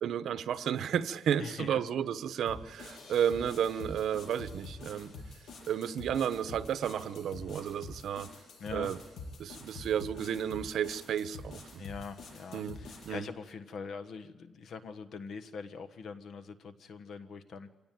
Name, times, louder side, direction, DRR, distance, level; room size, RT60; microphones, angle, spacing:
voice 1, 0.0-5.1 5.7-8.3 8.7-9.0 9.4-11.8 12.5-13.3, right 9 dB, 80° right, 12 dB, 1.0 m, -32 dB
voice 2, 1.4-1.8 8.6-8.9 11.8-17.7, left 5 dB, 65° left, 9 dB, 1.3 m, -43 dB
sound 1, 2.5-13.2, left 3 dB, 85° left, 7.7 m, -47 dB
25.0 x 18.0 x 9.3 m, 1.2 s
wide cardioid pair, 150°, 0 cm